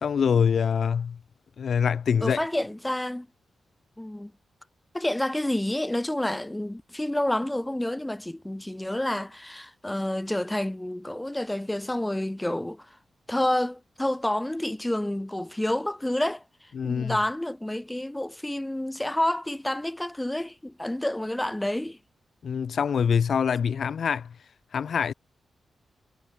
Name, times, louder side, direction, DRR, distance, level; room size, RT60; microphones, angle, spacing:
voice 1, 0.0-1.2 1.6-2.4 16.7-17.2 22.4-24.4 24.7-25.1, left 7 dB, 65° left, 0.4 m, -24 dB
voice 2, 2.2-3.3 4.0-4.3 4.9-13.0 13.3-22.0, left 1 dB, 10° left, 0.9 m, -29 dB
wide cardioid pair, 110°, 0 cm